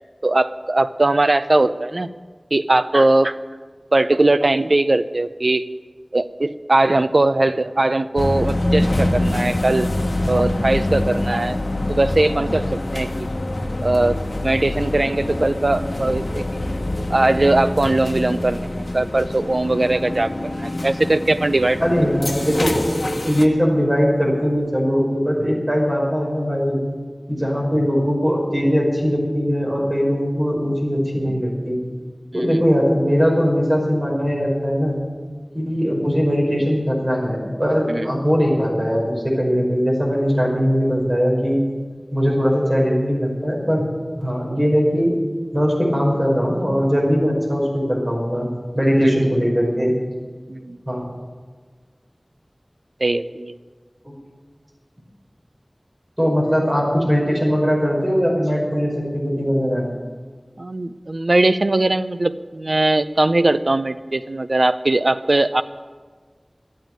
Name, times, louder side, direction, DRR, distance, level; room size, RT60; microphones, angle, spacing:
voice 1, 0.2-2.1 2.5-3.4 3.9-5.7 6.1-9.9 10.3-11.6 11.9-13.3 13.8-14.2 14.4-16.4 17.1-21.8 32.3-32.6 37.9-38.1 49.0-49.1 50.5-50.8 53.0-53.5 60.6-65.6, right 2 dB, 75° right, 12 dB, 0.5 m, -20 dB
sound 1, 8.2-23.5, left 1 dB, 75° left, 0.9 m, -25 dB
sound 2, 19.7-24.2 24.6-24.7, left 1 dB, 45° left, 1.8 m, -37 dB
voice 2, 21.8-26.8 27.3-31.8 32.3-35.0 35.5-41.6 42.1-43.9 44.2-45.1 45.5-48.5 48.7-49.9 50.9-51.1 54.0-54.2 56.2-59.9, equal, 30° right, -2 dB, 5.3 m, -20 dB
12.0 x 9.1 x 9.3 m, 1.5 s
wide cardioid pair, 40°, 0 cm